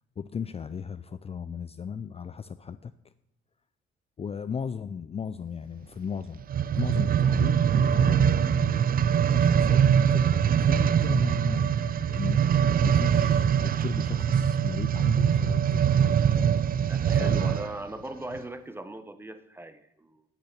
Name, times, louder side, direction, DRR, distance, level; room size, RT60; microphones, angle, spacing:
voice 1, 0.2-2.9 4.2-6.4 6.7-16.0 16.3-16.5 17.1-17.6, left 6 dB, 30° left, 13 dB, 0.5 m, -36 dB
sound 1, 6.4-17.8 18.4-18.5, right 8 dB, 45° right, 0.5 m, -23 dB
voice 2, 16.9-20.2, right 1 dB, 10° right, 11 dB, 1.1 m, -39 dB
10.0 x 6.8 x 8.3 m, 0.86 s
cardioid pair, 90°, 20 cm